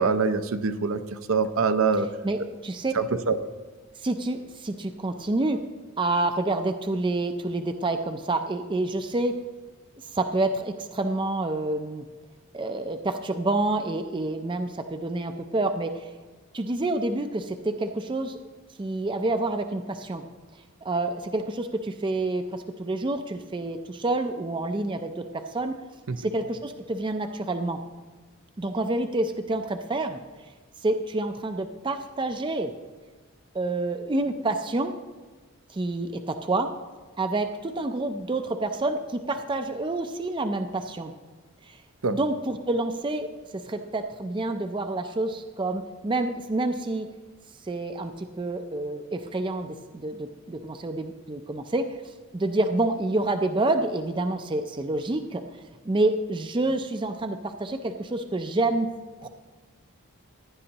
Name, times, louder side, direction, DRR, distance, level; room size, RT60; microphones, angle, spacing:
voice 1, 0.0-2.1 2.9-3.4 26.1-26.2 42.0-42.2, right 4 dB, 70° right, 9 dB, 0.6 m, -24 dB
voice 2, 2.2-2.9 4.0-5.6 6.0-9.3 10.1-12.0 12.5-16.1 16.5-18.4 18.8-20.2 20.8-25.8 26.2-27.8 28.6-30.2 30.8-32.7 33.5-34.9 35.7-36.7 37.2-41.1 41.6-41.8 42.1-43.3 43.7-47.1 47.7-55.4 55.9-58.9 59.2-59.3, right 2 dB, 20° right, 7 dB, 0.4 m, -28 dB
15.0 x 10.5 x 2.9 m, 1.4 s
head